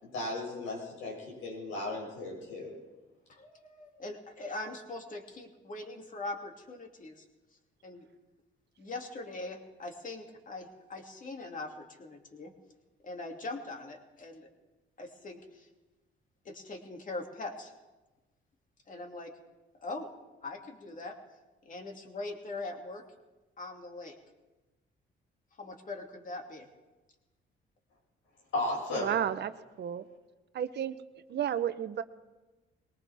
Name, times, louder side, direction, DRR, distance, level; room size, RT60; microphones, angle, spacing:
voice 1, 0.0-2.8 28.5-29.2, left 2 dB, 85° left, -2 dB, 6.2 m, -35 dB
voice 2, 3.3-7.2 7.8-8.1 8.8-12.5 13.0-14.5 15.0-15.7 16.4-17.7 18.9-19.3 19.8-20.1 20.4-21.2 21.6-23.0 23.6-24.2 25.6-26.7, left 2 dB, 40° left, 2 dB, 2.5 m, -41 dB
voice 3, 28.9-29.5 29.8-30.1 30.5-30.9 31.3-32.0, right 9 dB, 60° right, 12 dB, 0.9 m, -32 dB
21.5 x 19.0 x 3.6 m, 1.2 s
cardioid pair, 90°, 20 cm